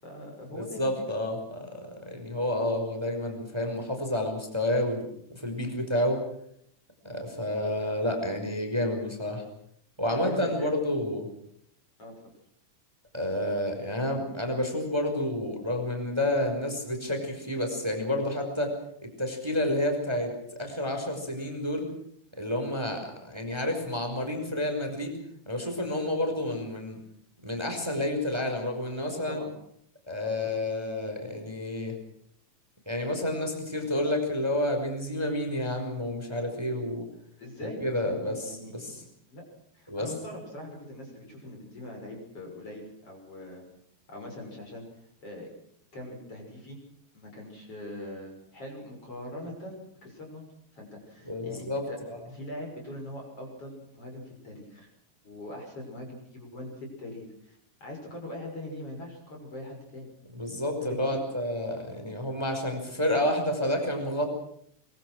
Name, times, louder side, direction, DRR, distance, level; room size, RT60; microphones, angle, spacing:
voice 1, 0.0-1.0 10.1-10.7 12.0-12.1 29.3-29.5 37.4-39.4 39.7-43.6 44.1-44.8 45.2-45.5 45.9-46.8 47.1-50.5 50.7-52.0 52.3-54.9 55.2-60.1 60.8-61.0, left 1 dB, 30° left, 1 dB, 6.9 m, -42 dB
voice 2, 0.5-6.2 7.0-9.4 10.0-11.3 13.1-18.7 19.0-21.9 22.4-25.2 25.4-27.0 27.4-29.4 30.1-31.9 32.8-37.1 37.6-39.0 39.9-40.1 51.2-52.2 60.3-64.3, left 1 dB, 5° right, 4 dB, 4.7 m, -30 dB
24.0 x 24.0 x 6.3 m, 0.69 s
omnidirectional pair, 5.5 m